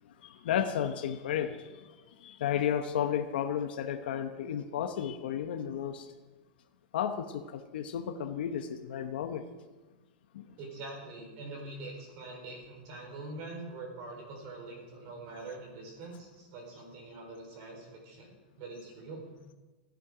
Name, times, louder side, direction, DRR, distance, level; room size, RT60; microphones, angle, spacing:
voice 1, 0.2-6.1 6.9-9.4 10.3-10.5, left 9 dB, 80° left, 6 dB, 1.0 m, -33 dB
voice 2, 10.6-18.3 18.6-19.2, right 2 dB, 45° right, 2 dB, 4.3 m, -44 dB
15.5 x 10.5 x 5.0 m, 1.2 s
supercardioid pair, 155°, 5 cm